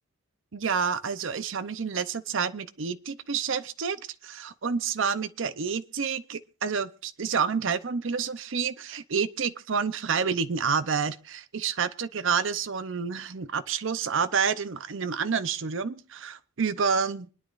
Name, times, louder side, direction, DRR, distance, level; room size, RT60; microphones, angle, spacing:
voice 1, 0.5-17.3, right 6 dB, 70° right, 0.7 m, -29 dB
26.0 x 10.0 x 2.5 m
head